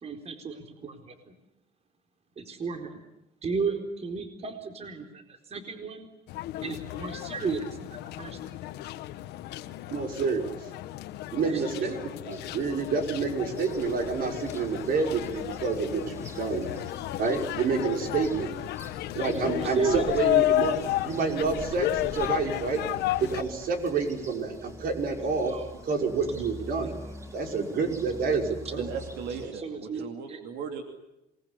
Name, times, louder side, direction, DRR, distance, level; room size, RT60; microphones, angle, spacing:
voice 1, 0.0-1.3 2.4-3.0 3.4-6.1 6.6-8.6 11.4-11.9 19.2-20.1 25.4-25.7 26.7-27.1 29.4-30.4, right 5 dB, 40° right, 5 dB, 4.2 m, -34 dB
sound 1, 6.3-23.4, left 14 dB, 80° left, 1.3 m, -32 dB
voice 2, 9.9-10.5 11.3-12.0 12.3-16.7 17.2-18.5 19.1-20.8 21.0-22.8 23.2-25.5 25.8-26.9 27.3-28.8, right 4 dB, 60° right, 4 dB, 5.9 m, -28 dB
sound 2, 12.3-29.5, equal, 15° right, 6.1 m, -45 dB
voice 3, 28.8-30.8, right 6 dB, 85° right, 5 dB, 3.1 m, -37 dB
27.5 x 20.5 x 10.0 m, 0.91 s
cardioid pair, 110°, 17 cm